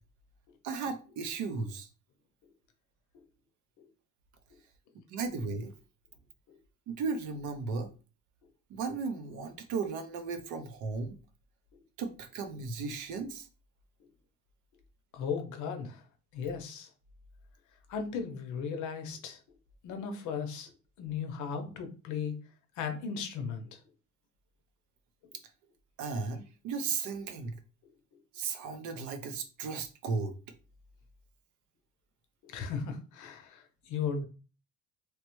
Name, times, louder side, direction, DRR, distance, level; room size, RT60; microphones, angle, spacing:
voice 1, 0.6-1.9 5.1-5.7 6.9-7.9 8.7-11.2 12.0-13.5 26.0-27.6 28.3-30.3, right 4 dB, 65° right, 0.7 m, -35 dB
voice 2, 15.1-16.0 16.3-16.9 17.9-19.4 19.8-20.7 21.0-22.3 22.8-23.8 32.4-34.3, left 6 dB, 65° left, 0.7 m, -36 dB
3.1 x 2.1 x 3.0 m
cardioid pair, 135°, 32 cm